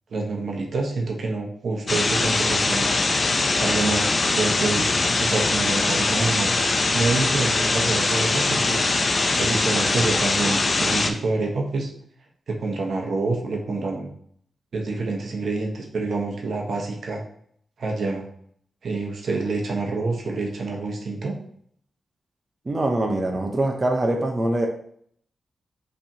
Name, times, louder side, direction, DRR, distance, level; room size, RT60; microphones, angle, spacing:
voice 1, 0.1-2.9 3.6-6.5 6.9-8.8 9.4-11.9 12.5-14.1 14.7-17.2 17.8-18.2 18.8-21.4, right 3 dB, 70° right, 1 dB, 1.0 m, -27 dB
sound 1, 1.9-11.1, left 3 dB, 45° left, 0.5 m, -22 dB
voice 2, 22.7-24.7, right 1 dB, 35° right, 2 dB, 0.7 m, -23 dB
5.8 x 3.3 x 2.8 m, 0.63 s
cardioid pair, 80°, 0 cm